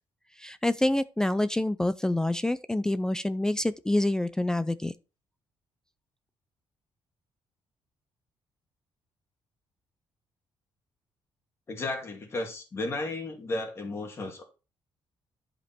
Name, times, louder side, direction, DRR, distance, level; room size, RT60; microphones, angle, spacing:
voice 1, 0.4-4.9, left 1 dB, 5° left, 0.3 m, -27 dB
voice 2, 11.7-14.4, left 2 dB, 30° left, 2.5 m, -34 dB
11.0 x 5.2 x 4.4 m
cardioid pair, 170°, 9 cm